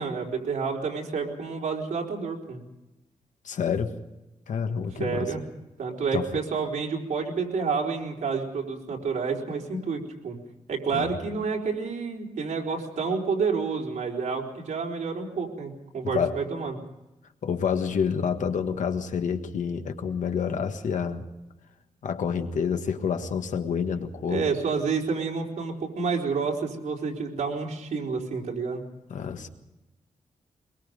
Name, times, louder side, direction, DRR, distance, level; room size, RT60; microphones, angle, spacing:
voice 1, 0.0-2.6 4.9-5.4 5.8-10.4 10.7-16.8 24.3-28.8, right 5 dB, 85° right, 0 dB, 4.3 m, -29 dB
voice 2, 3.4-3.9 4.5-5.3 6.1-6.4 10.9-11.2 16.0-16.4 17.4-21.2 22.0-24.5 29.1-29.5, left 6 dB, 80° left, 6 dB, 1.6 m, -28 dB
23.0 x 22.5 x 5.2 m, 1.0 s
wide cardioid pair, 180°, 13 cm